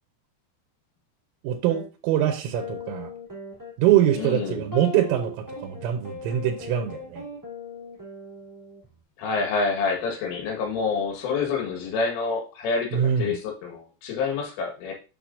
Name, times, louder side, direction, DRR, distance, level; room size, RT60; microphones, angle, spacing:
voice 1, 1.4-3.1 3.8-7.2 12.9-13.4, right 11 dB, 85° right, 4 dB, 3.4 m, -24 dB
sound 1, 1.7-1.8 2.5-8.9, left 2 dB, 25° right, 0.4 m, -38 dB
voice 2, 4.2-4.6 9.2-12.9 13.2-14.9, left 4 dB, 75° left, 1 dB, 4.0 m, -27 dB
8.6 x 6.5 x 2.6 m, 0.33 s
omnidirectional pair, 5.9 m